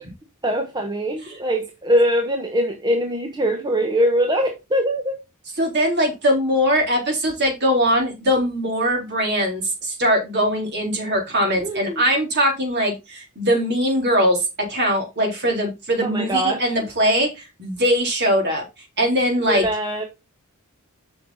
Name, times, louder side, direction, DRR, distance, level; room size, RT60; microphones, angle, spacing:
voice 1, 0.4-5.2 11.6-12.0 16.1-16.6 19.4-20.1, equal, 20° right, 1.2 m, -22 dB
voice 2, 5.6-18.6 19.0-19.7, equal, 50° right, 3.9 m, -21 dB
7.7 x 5.9 x 4.0 m
head